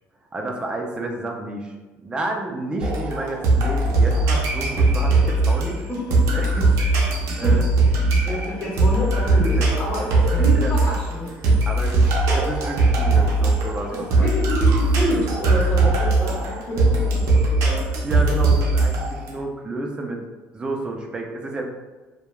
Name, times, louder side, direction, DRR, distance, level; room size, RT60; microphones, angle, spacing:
voice 1, 0.3-5.9 6.3-6.7 7.4-7.7 9.4-9.7 10.3-10.7 11.4-14.3 18.0-20.2 20.5-21.7, right 2 dB, 15° right, 0 dB, 0.4 m, -31 dB
sound 1, 2.8-19.3, right 2 dB, 75° right, 0.6 m, -20 dB
voice 2, 5.9-6.4 7.0-11.6 13.8-17.9, equal, 30° left, -6 dB, 1.1 m, -28 dB
3.0 x 2.2 x 2.2 m, 1.2 s
cardioid pair, 120°, 6 cm